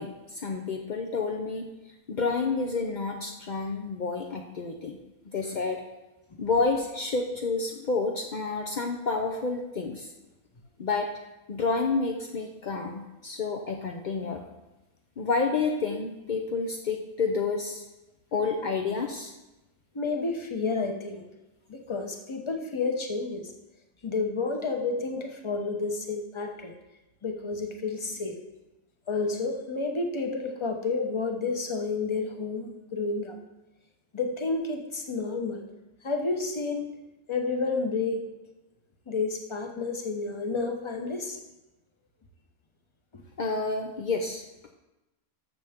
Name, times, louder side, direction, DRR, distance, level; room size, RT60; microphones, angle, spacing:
voice 1, 0.0-1.7 2.1-5.0 5.3-5.8 6.4-10.1 10.8-11.1 11.5-14.4 15.2-17.8 18.3-19.3 43.4-44.4, left 4 dB, 60° left, 2 dB, 0.4 m, -29 dB
voice 2, 19.9-21.2 21.7-23.5 24.0-26.7 27.2-28.4 29.1-33.4 34.1-35.6 36.0-36.8 37.3-38.2 39.1-41.4 43.1-43.2, left 3 dB, 25° left, 4 dB, 0.7 m, -30 dB
13.5 x 6.8 x 3.6 m, 1.0 s
omnidirectional pair, 1.6 m